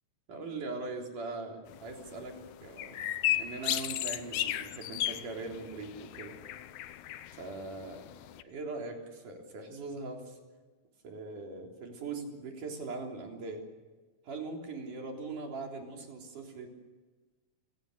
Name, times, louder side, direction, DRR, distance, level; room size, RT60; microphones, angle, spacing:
voice 1, 0.3-3.0 3.3-6.3 7.4-8.1 8.4-10.4 11.0-13.6 14.2-16.7, right 3 dB, 65° right, 1 dB, 5.1 m, -41 dB
sound 1, 1.7-8.4, left 13 dB, 70° left, 2.1 m, -36 dB
29.0 x 18.5 x 6.8 m, 1.3 s
omnidirectional pair, 3.9 m